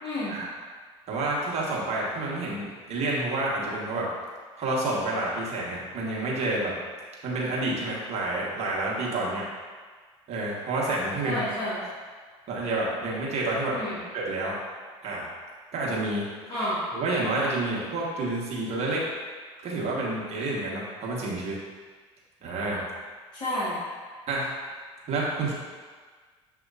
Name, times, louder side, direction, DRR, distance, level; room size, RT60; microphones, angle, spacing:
voice 1, 0.0-0.3 11.2-11.8 13.7-14.0 16.5-16.8 23.3-23.8, left 1 dB, 30° left, -11 dB, 1.3 m, -30 dB
voice 2, 1.1-4.1 4.6-6.7 7.2-9.4 10.3-11.5 12.5-13.8 14.1-14.6 15.0-15.3 15.7-16.2 16.9-19.0 19.6-21.5 22.4-22.8 24.3-24.5 25.1-25.5, right 2 dB, 50° right, -4 dB, 1.3 m, -29 dB
6.3 x 2.8 x 2.5 m, 1.5 s
hypercardioid pair, 75°, 15 cm